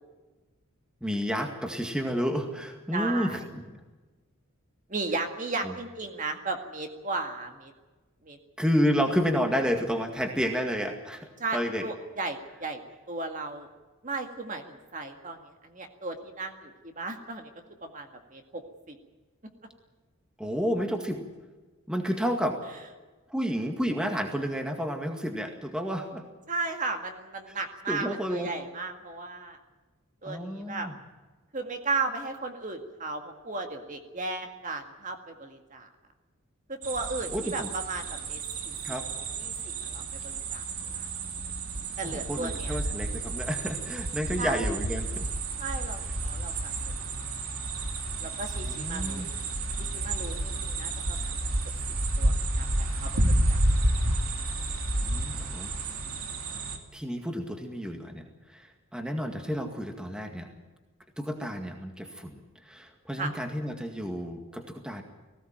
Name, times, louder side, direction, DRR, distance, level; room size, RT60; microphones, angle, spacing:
voice 1, 1.0-3.8 5.6-5.7 8.6-11.9 20.4-21.3 21.9-22.6 23.3-26.2 27.9-28.5 30.2-30.9 37.3-37.7 38.8-39.1 42.0-45.3 48.7-49.3 55.0-55.7 56.9-60.5 61.2-65.0, equal, 5° right, 4 dB, 2.0 m, -30 dB
voice 2, 2.9-3.4 4.9-7.7 8.2-8.4 11.4-12.8 13.1-13.7 14.0-17.5 17.8-18.6 18.9-19.0 26.5-29.6 30.2-30.9 31.5-35.9 36.7-38.7 39.2-40.6 40.9-41.1 42.0-42.8 44.4-44.6 45.6-46.7 47.3-47.4 48.2-49.2 49.8-51.3 52.2-54.0 63.2-63.3, right 3 dB, 35° right, 5 dB, 2.0 m, -35 dB
sound 1, 36.8-56.8, right 2 dB, 85° right, 2.7 m, -30 dB
19.5 x 16.5 x 9.0 m, 1.2 s
head